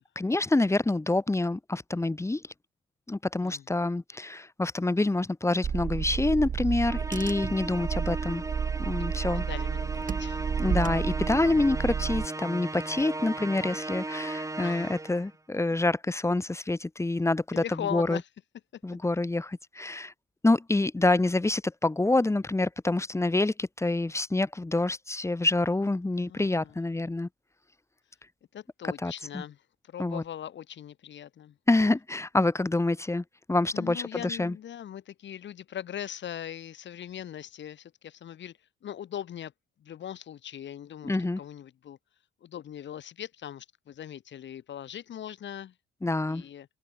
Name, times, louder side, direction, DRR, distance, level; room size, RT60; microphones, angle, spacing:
voice 1, 0.1-2.4 3.1-8.4 8.8-9.4 10.6-18.2 18.8-20.1 20.4-27.3 29.0-29.4 30.0-30.2 31.7-34.5 41.0-41.4 46.0-46.4, left 2 dB, 15° left, 1.5 m, -27 dB
Car / Engine, 5.6-12.3, right 7 dB, 40° right, 1.4 m, -31 dB
Musical instrument, 6.8-15.3, right 2 dB, 15° right, 2.7 m, -36 dB
voice 2, 9.3-10.5 14.6-14.9 17.5-18.2 18.7-18.8 25.7-25.8 26.2-26.7 28.5-29.6 29.8-31.6 33.7-39.5 39.8-42.0 42.4-45.7 46.3-46.7, left 10 dB, 65° left, 7.4 m, -40 dB
cardioid pair, 90°, 20 cm